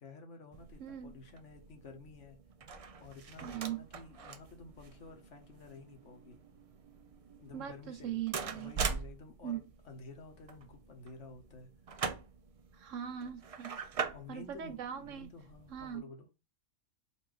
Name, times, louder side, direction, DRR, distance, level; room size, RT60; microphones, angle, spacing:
voice 1, 0.0-2.4 3.0-6.4 7.4-11.7 14.1-16.3, left 4 dB, 70° left, 1.3 m, -52 dB
sound 1, 0.5-16.0, right 5 dB, 60° right, 0.3 m, -43 dB
voice 2, 0.8-1.2 3.4-3.8 7.5-8.7 9.4-9.6 12.7-13.8 14.3-15.3 15.7-16.1, right 10 dB, 80° right, 1.1 m, -40 dB
4.2 x 2.6 x 4.9 m
omnidirectional pair, 1.3 m